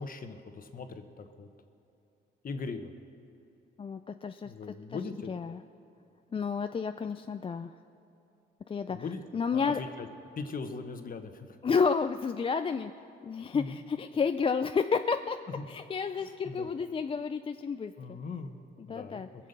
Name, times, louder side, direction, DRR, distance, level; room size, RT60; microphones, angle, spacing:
voice 1, 0.0-1.5 2.4-2.9 4.4-5.3 8.9-9.2 9.5-10.1 10.3-11.5 13.5-13.8 15.6-15.7 16.2-16.7 18.0-19.3, left 4 dB, 45° left, 7 dB, 1.2 m, -40 dB
voice 2, 3.8-4.5 4.9-5.0 5.3-5.6 6.3-7.7 8.7-9.0 9.3-9.8 11.6-12.9 13.2-15.4 15.7-18.2 18.8-19.3, left 5 dB, 25° left, 8 dB, 0.4 m, -31 dB
22.0 x 7.4 x 6.7 m, 2.9 s
cardioid pair, 90°, 20 cm